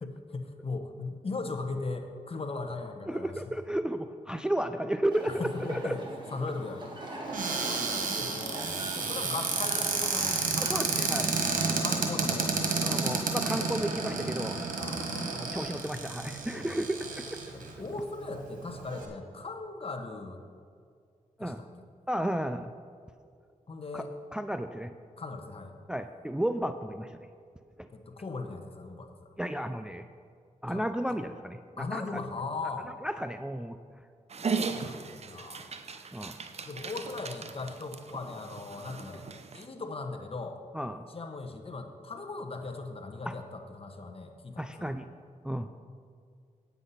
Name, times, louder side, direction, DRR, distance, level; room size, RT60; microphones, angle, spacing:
voice 1, 0.0-3.4 5.3-6.0 6.3-6.9 7.4-11.0 11.6-12.7 14.8-15.3 16.5-16.8 17.5-20.4 21.4-21.7 23.7-24.1 25.2-25.7 27.9-29.3 30.7-30.8 31.8-32.9 34.7-35.7 36.6-39.2 39.5-40.6 41.1-44.9, left 3 dB, 45° left, 6 dB, 1.1 m, -38 dB
voice 2, 3.1-6.0 10.6-11.4 11.6-11.8 12.8-14.7 15.3-17.4 21.4-21.6 22.1-22.7 23.9-24.0 24.3-25.0 25.9-27.2 27.8-27.9 29.4-30.1 30.6-32.2 33.0-33.8 36.1-36.4 40.7-41.1 43.2-43.4 44.6-45.1 45.4-45.8, right 1 dB, 5° right, 9 dB, 0.4 m, -33 dB
sound 1, 5.1-10.8, right 1 dB, 35° right, 2.3 m, -42 dB
Cupboard open or close, 7.3-17.7 18.4-18.5 18.7-19.0, right 4 dB, 85° right, 1.5 m, -31 dB
Dog, 34.3-39.6, right 5 dB, 50° right, 0.7 m, -37 dB
8.9 x 8.3 x 5.7 m, 2.2 s
cardioid pair, 60°, 14 cm